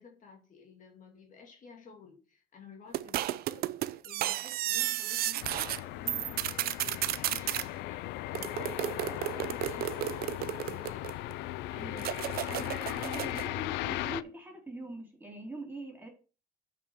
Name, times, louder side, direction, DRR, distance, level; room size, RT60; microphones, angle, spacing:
voice 1, 0.0-8.1 8.4-11.2, left 5 dB, 50° left, 2 dB, 2.3 m, -52 dB
sound 1, 2.9-5.8 6.1-7.7 8.3-11.3 12.0-13.5, right 14 dB, 65° right, 0.5 m, -33 dB
sound 2, 5.4-14.2, left 16 dB, 90° left, 0.5 m, -37 dB
voice 2, 11.7-16.1, right 2 dB, 10° right, 1 dB, 4.3 m, -43 dB
6.9 x 5.8 x 6.3 m, 0.34 s
cardioid pair, 110°, 17 cm